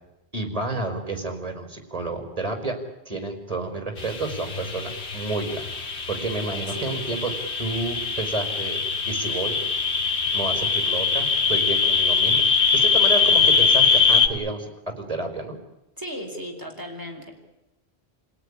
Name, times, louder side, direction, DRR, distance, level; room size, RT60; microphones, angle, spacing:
voice 1, 0.3-2.8 3.0-5.7 6.1-7.3 7.6-8.8 9.0-9.6 10.3-12.4 12.7-14.7 15.0-15.6, right 3 dB, 35° right, 4 dB, 5.1 m, -30 dB
sound 1, 4.0-14.3, left 5 dB, 85° left, 2.2 m, -22 dB
voice 2, 6.7-7.1 16.0-17.3, equal, 20° right, 1 dB, 4.8 m, -36 dB
29.5 x 18.0 x 10.0 m, 0.96 s
omnidirectional pair, 1.1 m